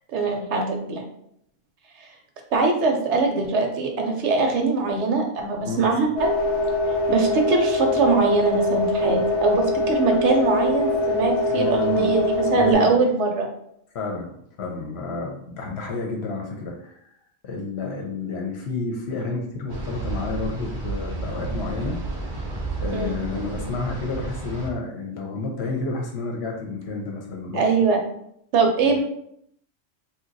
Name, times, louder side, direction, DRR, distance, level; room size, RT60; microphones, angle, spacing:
voice 1, 0.1-1.0 2.5-6.3 7.1-13.5 22.9-23.2 27.5-28.0 28.5-29.0, right 4 dB, 70° right, 3 dB, 0.8 m, -22 dB
sound 1, 6.2-12.7, left 2 dB, 30° left, 0.6 m, -23 dB
voice 2, 11.5-12.1 12.5-13.0 13.9-14.3 14.6-17.0 17.4-22.0 22.8-27.6 28.8-29.0, left 3 dB, 65° left, 1 dB, 0.8 m, -30 dB
sound 2, 19.7-24.7, right 3 dB, 50° right, 0.5 m, -32 dB
2.8 x 2.2 x 3.8 m, 0.72 s
omnidirectional pair, 1.3 m